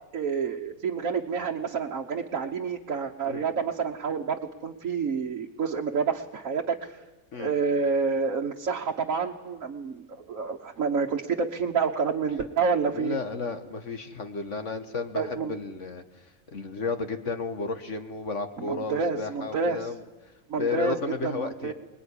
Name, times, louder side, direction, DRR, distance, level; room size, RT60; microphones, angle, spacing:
voice 1, 0.1-7.0 7.3-13.2 15.1-15.5 18.6-19.9 20.5-21.7, right 5 dB, 65° right, 1 dB, 1.6 m, -28 dB
voice 2, 12.9-16.0 16.5-20.0 20.6-21.7, left 4 dB, 55° left, 8 dB, 1.8 m, -33 dB
24.5 x 20.5 x 9.9 m, 1.1 s
omnidirectional pair, 1.5 m